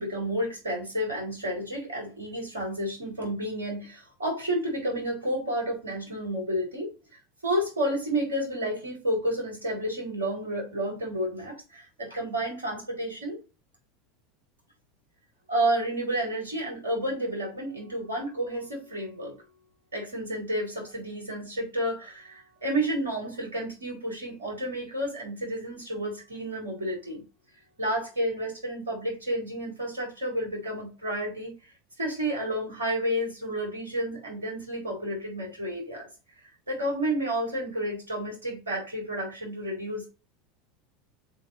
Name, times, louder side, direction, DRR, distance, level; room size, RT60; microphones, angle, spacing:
voice 1, 0.0-6.9 7.4-13.4 15.5-19.4 19.9-27.2 27.8-31.5 32.0-36.1 36.7-40.1, right 1 dB, 80° right, -1 dB, 4.6 m, -31 dB
6.3 x 4.6 x 6.2 m, 0.30 s
figure-of-eight pair, 75°, 0 cm